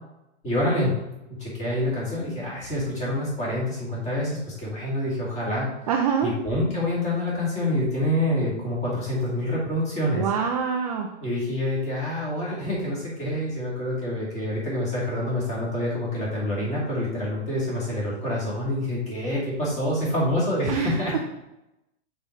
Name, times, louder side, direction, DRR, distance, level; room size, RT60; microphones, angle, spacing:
voice 1, 0.4-1.0 1.3-5.7 6.2-10.3 11.2-21.2, left 1 dB, 20° left, -5 dB, 2.3 m, -27 dB
voice 2, 5.9-6.3 10.1-11.2 20.7-21.2, right 7 dB, 35° right, 2 dB, 0.4 m, -25 dB
5.4 x 4.7 x 4.1 m, 0.92 s
supercardioid pair, 160°, 36 cm